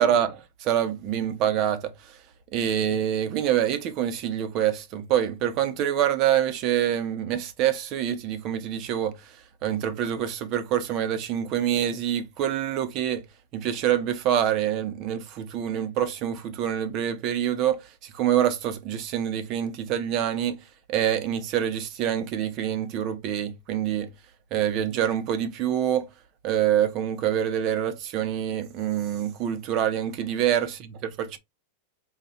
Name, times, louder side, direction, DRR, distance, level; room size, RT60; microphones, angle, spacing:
voice 1, 0.0-1.9 2.5-9.1 9.6-13.2 13.5-17.8 18.2-20.6 20.9-24.1 24.5-26.1 26.4-31.4, right 10 dB, 40° right, 0.8 m, -26 dB
4.0 x 2.3 x 4.2 m
supercardioid pair, 150°, 0 cm